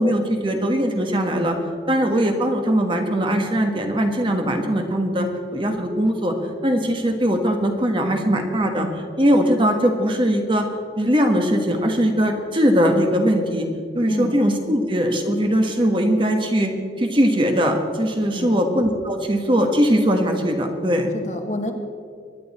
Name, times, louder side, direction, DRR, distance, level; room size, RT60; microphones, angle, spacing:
voice 1, 0.0-1.6 1.9-5.3 5.5-6.3 6.6-8.9 9.2-10.7 11.0-13.7 13.9-16.7 17.0-21.1, equal, 30° right, 4 dB, 1.4 m, -20 dB
voice 2, 14.1-14.4 18.3-18.6 21.1-21.7, left 1 dB, 40° left, 4 dB, 1.4 m, -29 dB
23.0 x 10.5 x 4.2 m, 2.1 s
head